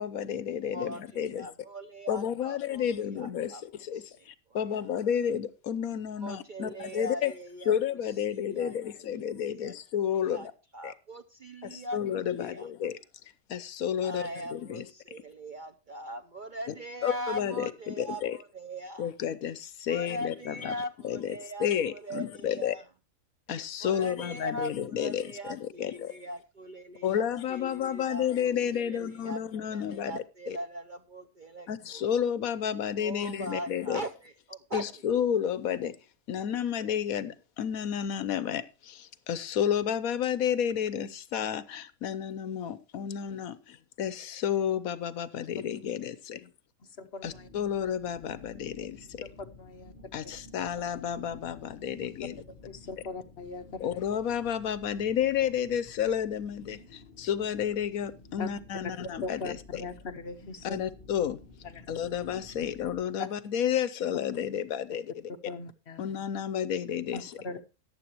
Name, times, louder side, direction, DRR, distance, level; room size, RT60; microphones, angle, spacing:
voice 1, 0.0-1.5 2.1-3.5 3.8-7.3 7.7-10.5 10.8-10.9 11.6-12.9 13.5-14.2 14.5-14.9 17.0-18.4 19.0-20.7 21.0-21.3 21.6-22.7 23.5-25.2 25.8-26.2 27.0-30.1 30.5-30.6 31.7-34.0 34.7-36.0 36.3-46.5 47.2-49.0 50.1-52.4 53.8-59.8 60.6-61.4 61.9-65.1 66.0-67.3, left 9 dB, 75° left, 1.2 m, -31 dB
voice 2, 0.7-3.6 3.9-5.0 6.1-9.7 10.1-12.7 14.0-19.1 19.9-22.9 23.8-29.4 29.7-32.1 33.0-35.0, right 1 dB, 45° right, 0.7 m, -41 dB
voice 3, 46.8-47.5 49.4-49.9 50.2-50.4 52.7-54.1 58.4-58.5 58.8-58.9 59.2-60.8 61.6-61.8 63.2-63.3 65.4-66.0 67.1-67.6, left 4 dB, 50° left, 1.1 m, -40 dB
sound 1, 47.2-63.0, left 3 dB, 35° left, 1.2 m, -52 dB
14.0 x 9.7 x 3.0 m
omnidirectional pair, 1.5 m